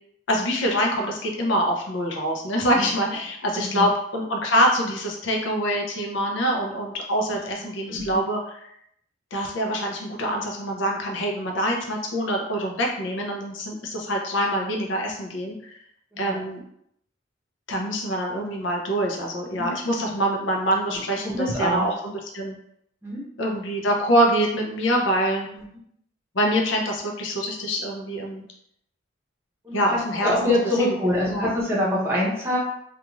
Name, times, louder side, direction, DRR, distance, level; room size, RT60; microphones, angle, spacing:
voice 1, 0.3-8.7 9.3-15.7 16.2-16.6 17.7-22.6 23.4-25.5 26.3-28.4 29.7-30.5 30.8-30.9 31.2-31.5, equal, 75° left, 0 dB, 0.6 m, -25 dB
voice 2, 3.5-3.9 7.3-7.4 7.9-8.2 16.1-16.4 19.5-19.7 20.9-21.9 23.0-23.2 25.5-25.6 29.6-32.6, left 1 dB, 10° right, -6 dB, 0.7 m, -25 dB
2.5 x 2.3 x 3.0 m, 0.74 s
head